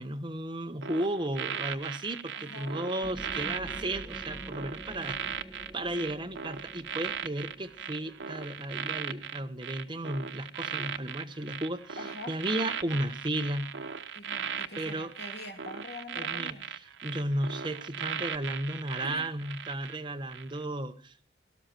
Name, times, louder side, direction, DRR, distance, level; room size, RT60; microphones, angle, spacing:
voice 1, 0.0-5.2 5.7-13.7 14.8-15.1 16.2-16.6 17.0-21.2, right 1 dB, 25° right, 7 dB, 1.2 m, -34 dB
sound 1, 0.8-20.0 20.3-20.6, right 7 dB, 90° right, 0.9 m, -38 dB
voice 2, 2.3-2.8 5.0-5.2 12.0-13.0 14.1-16.7 19.0-19.3, left 2 dB, 65° left, 6 dB, 2.5 m, -45 dB
sound 2, 3.0-10.4, equal, 5° right, 1.6 m, -47 dB
18.0 x 13.0 x 4.5 m, 0.37 s
head